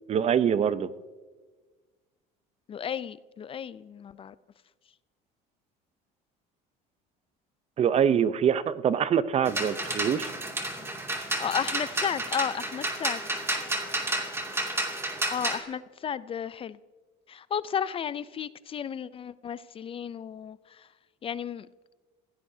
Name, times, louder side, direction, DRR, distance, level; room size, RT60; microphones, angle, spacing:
voice 1, 0.1-0.9 7.8-10.3, right 8 dB, 40° right, 0.7 m, -24 dB
voice 2, 2.7-4.3 11.4-13.2 15.3-16.8 17.3-20.6 21.2-21.7, left 8 dB, 30° left, 0.5 m, -33 dB
sound 1, 9.5-15.6, right 1 dB, 15° right, 2.5 m, -31 dB
29.5 x 16.5 x 2.8 m
supercardioid pair, 110°, 17 cm